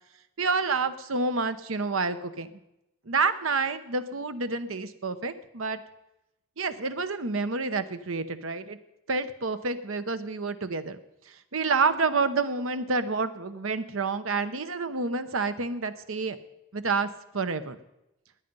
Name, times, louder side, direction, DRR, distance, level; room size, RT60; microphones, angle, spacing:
voice 1, 0.4-2.6 3.0-5.8 6.6-8.8 9.1-11.0 11.3-16.4 16.7-17.8, right 4 dB, 75° right, 11 dB, 1.0 m, -29 dB
19.5 x 9.2 x 5.4 m, 0.90 s
head